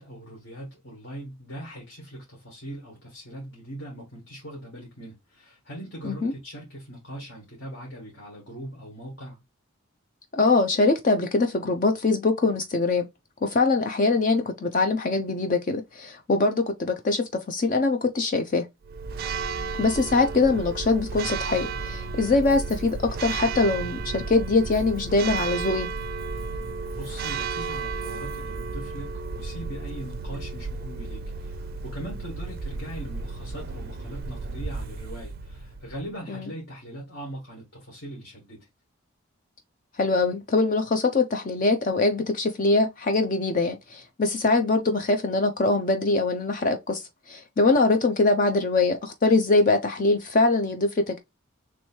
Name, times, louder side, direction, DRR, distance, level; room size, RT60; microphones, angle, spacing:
voice 1, 0.0-9.4 26.9-38.7, right 1 dB, 60° left, 1.7 m, -40 dB
voice 2, 10.3-13.1 13.4-18.6 19.8-25.9 36.3-36.5 40.0-51.2, left 3 dB, 40° left, 0.5 m, -23 dB
Church bell, 18.8-36.1, right 4 dB, 45° right, 0.4 m, -33 dB
3.1 x 3.1 x 4.4 m
head